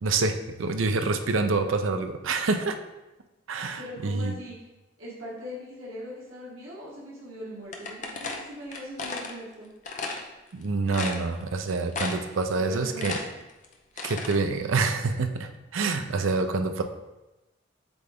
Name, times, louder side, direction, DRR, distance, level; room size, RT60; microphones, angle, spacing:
voice 1, 0.0-2.8 3.5-4.3 10.5-13.1 14.0-16.8, right 3 dB, 70° right, 7 dB, 0.5 m, -27 dB
voice 2, 3.8-4.5 5.0-9.7 12.6-13.1 13.9-14.1, equal, 90° right, -7 dB, 1.6 m, -41 dB
sound 1, 7.7-9.3 9.9-10.2 10.6-10.7 10.9-11.6 11.9-12.4 12.7-14.4, left 3 dB, 35° left, 0.6 m, -34 dB
8.0 x 3.3 x 3.5 m, 1.0 s
head